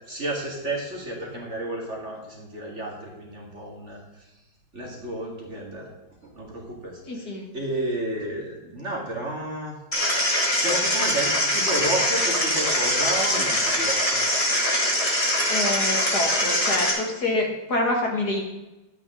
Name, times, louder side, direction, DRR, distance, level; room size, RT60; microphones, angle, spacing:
voice 1, 0.1-4.0 4.7-5.9 6.4-7.0 7.5-9.8 10.1-14.2, right 1 dB, 35° right, -1 dB, 2.2 m, -31 dB
voice 2, 7.0-7.5 15.5-18.4, left 2 dB, 55° left, 1 dB, 2.1 m, -26 dB
sound 1, 9.9-16.9, left 1 dB, 15° left, 2.3 m, -23 dB
12.5 x 9.1 x 3.7 m, 1.0 s
omnidirectional pair, 2.2 m